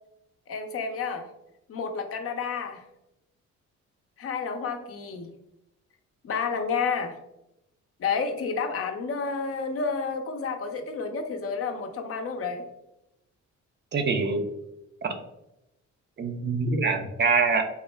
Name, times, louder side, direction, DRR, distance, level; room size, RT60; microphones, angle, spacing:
voice 1, 0.5-1.3 1.7-2.8 4.2-5.3 6.2-7.2 8.0-12.6, left 5 dB, 50° left, 6 dB, 0.5 m, -30 dB
voice 2, 13.9-14.5 15.0-15.1 16.2-17.6, right 4 dB, 35° right, 5 dB, 0.4 m, -24 dB
3.5 x 2.1 x 3.2 m, 0.87 s
cardioid pair, 90°, 30 cm